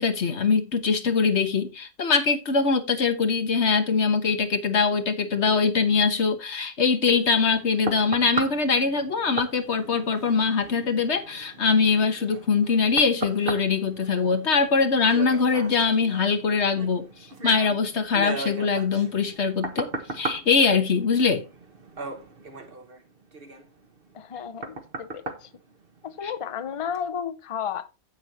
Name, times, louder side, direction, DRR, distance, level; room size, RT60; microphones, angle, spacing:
voice 1, 0.0-17.1 17.4-19.9 20.1-21.5 26.2-26.3, left 5 dB, 90° left, 1.6 m, -22 dB
sound 1, 7.2-26.4 26.9-27.1, right 3 dB, 60° right, 1.5 m, -37 dB
voice 2, 24.1-25.5 26.0-27.9, left 8 dB, 35° left, 0.7 m, -33 dB
10.5 x 8.2 x 2.9 m
omnidirectional pair, 1.1 m